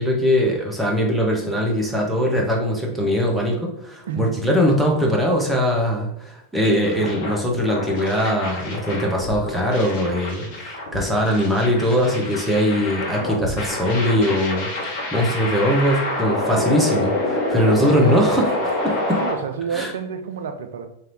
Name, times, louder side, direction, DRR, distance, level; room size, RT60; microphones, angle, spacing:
voice 1, 0.0-18.6 18.8-19.2 19.7-19.9, equal, 5° right, 0.9 m, -21 dB
voice 2, 4.1-4.4 19.2-20.9, right 7 dB, 60° right, 0.4 m, -29 dB
sound 1, 6.8-19.3, left 1 dB, 50° left, 1.3 m, -27 dB
3.2 x 2.8 x 4.0 m
figure-of-eight pair, 90°, 0 cm